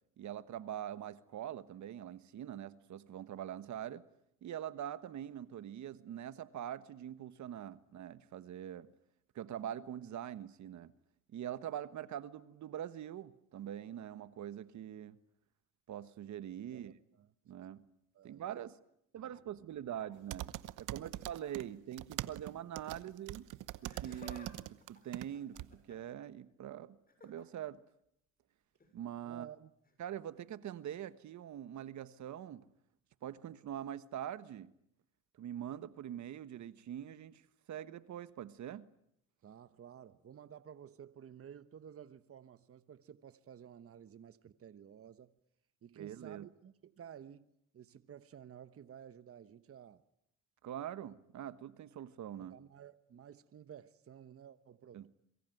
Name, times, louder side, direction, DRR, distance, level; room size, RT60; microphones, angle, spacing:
voice 1, 0.2-4.0 4.4-8.9 9.3-10.9 11.3-15.2 15.9-17.0 17.5-17.8 18.2-18.8 19.1-20.5 20.8-23.5 23.8-27.0 27.2-27.8 28.9-29.5 30.0-32.7 33.2-34.7 35.4-37.4 37.7-38.8 46.0-46.5 50.6-52.6 54.9-55.1, right 10 dB, 70° right, 1.4 m, -44 dB
voice 2, 16.7-17.3 18.1-18.4 29.2-29.7 39.4-45.3 45.8-47.5 47.7-50.0 52.4-55.1, right 9 dB, 50° right, 1.2 m, -53 dB
sound 1, 20.3-21.6 21.9-25.3 25.6-25.7, right 15 dB, 90° right, 1.0 m, -42 dB
Laughter, 23.7-24.5 24.8-26.2 27.1-27.4 28.8-28.9 29.8-29.9, left 2 dB, 30° left, 7.6 m, -56 dB
26.0 x 23.5 x 9.3 m
cardioid pair, 90°, 30 cm